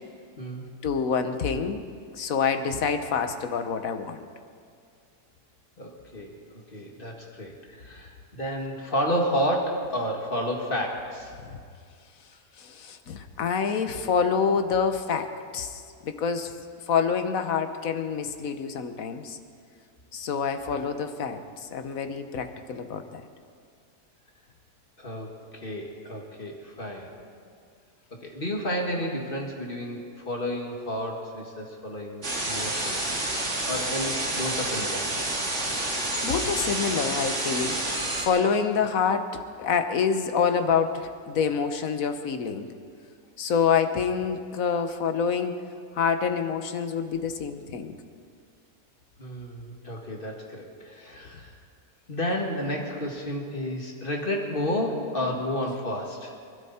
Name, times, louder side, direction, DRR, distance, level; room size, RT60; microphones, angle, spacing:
voice 1, 0.8-1.8 2.1-4.3 12.6-16.5 16.9-19.4 20.1-23.2 36.2-42.7 43.4-45.6 46.0-48.0, left 6 dB, 65° left, 8 dB, 1.4 m, -27 dB
voice 2, 5.8-11.3 20.6-20.8 25.0-27.1 28.2-33.2 33.7-35.1 49.2-51.5 52.1-56.3, equal, 35° left, 0 dB, 2.1 m, -31 dB
sound 1, 32.2-38.3, right 1 dB, 45° right, 2.7 m, -29 dB
26.0 x 12.5 x 4.3 m, 2.2 s
omnidirectional pair, 1.7 m